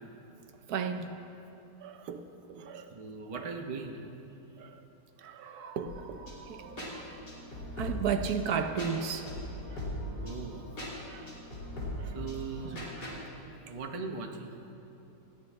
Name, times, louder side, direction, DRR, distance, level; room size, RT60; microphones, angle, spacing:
voice 1, 0.7-1.1 1.8-2.2 2.5-2.9 3.3-3.6 4.6-4.8 5.2-7.2 7.8-9.3 9.7-9.9 11.1-11.3 12.0-12.2 12.6-13.2, right 6 dB, 70° right, 7 dB, 1.2 m, -35 dB
voice 2, 2.7-4.1 10.2-10.6 12.1-12.9 13.5-14.6, right 4 dB, 30° right, 3 dB, 0.6 m, -40 dB
sound 1, 5.9-13.2, left 1 dB, 80° left, 3.6 m, -40 dB
18.0 x 14.0 x 3.5 m, 2.9 s
omnidirectional pair, 1.8 m